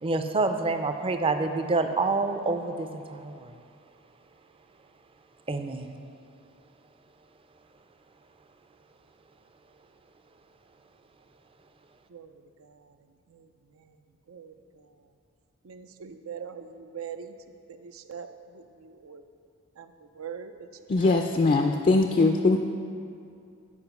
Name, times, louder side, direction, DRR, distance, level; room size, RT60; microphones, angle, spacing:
voice 1, 0.0-3.6 5.5-5.9, right 3 dB, 25° right, 7 dB, 0.5 m, -27 dB
voice 2, 14.3-14.8 15.6-17.4 17.7-18.3 18.5-19.2 19.8-20.5 21.0-21.2, right 7 dB, 80° right, 8 dB, 0.5 m, -42 dB
voice 3, 20.9-22.6, left 3 dB, 35° left, 4 dB, 0.4 m, -21 dB
9.7 x 4.9 x 6.0 m, 2.4 s
head